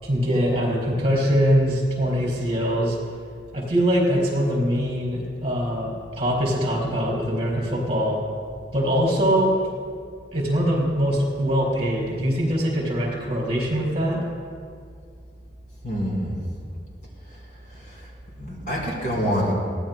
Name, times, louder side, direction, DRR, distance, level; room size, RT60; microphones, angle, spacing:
voice 1, 0.0-3.0 3.5-8.2 8.7-9.6 10.3-14.2, equal, 30° right, -3 dB, 4.1 m, -22 dB
voice 2, 15.8-16.4 18.4-19.5, equal, 50° left, -3 dB, 4.0 m, -25 dB
22.5 x 17.5 x 2.2 m, 2.2 s
head